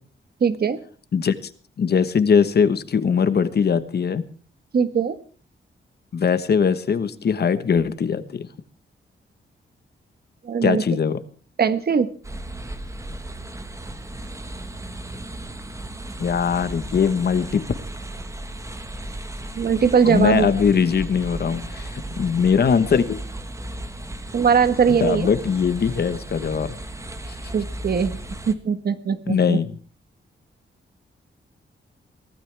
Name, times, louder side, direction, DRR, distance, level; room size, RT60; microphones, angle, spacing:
voice 1, 0.4-0.8 4.7-5.2 10.4-10.8 11.6-12.1 19.5-20.5 24.3-25.3 27.5-28.2 28.5-29.6, right 6 dB, 50° right, 11 dB, 1.4 m, -20 dB
voice 2, 1.1-1.5 1.8-4.2 6.1-8.5 10.6-11.2 16.2-17.6 20.0-23.2 25.0-26.7 27.3-27.4 29.3-29.7, left 6 dB, 55° left, 12 dB, 1.3 m, -21 dB
sound 1, 12.2-28.5, right 1 dB, 15° right, 1.5 m, -35 dB
24.0 x 16.5 x 3.5 m, 0.40 s
wide cardioid pair, 170°, 20 cm